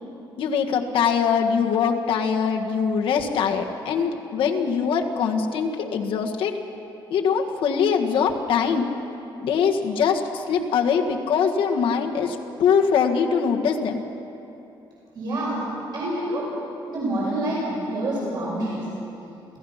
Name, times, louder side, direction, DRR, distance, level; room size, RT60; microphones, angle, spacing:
voice 1, 0.4-6.5 7.1-8.9 9.4-14.0, left 6 dB, 90° left, 2 dB, 1.7 m, -22 dB
voice 2, 15.1-15.7 15.9-16.5 16.9-18.9, right 1 dB, 55° right, -6 dB, 5.8 m, -27 dB
27.5 x 16.0 x 5.8 m, 2.9 s
cardioid pair, 175°, 9 cm